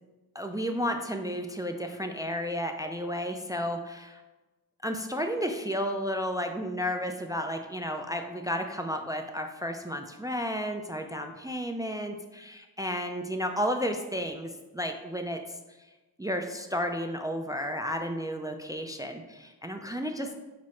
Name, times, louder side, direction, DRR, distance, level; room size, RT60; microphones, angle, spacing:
voice 1, 0.3-4.2 4.8-15.4 16.2-20.3, equal, 10° right, 5 dB, 0.3 m, -32 dB
6.1 x 2.0 x 4.2 m, 1.1 s
cardioid pair, 50°, 36 cm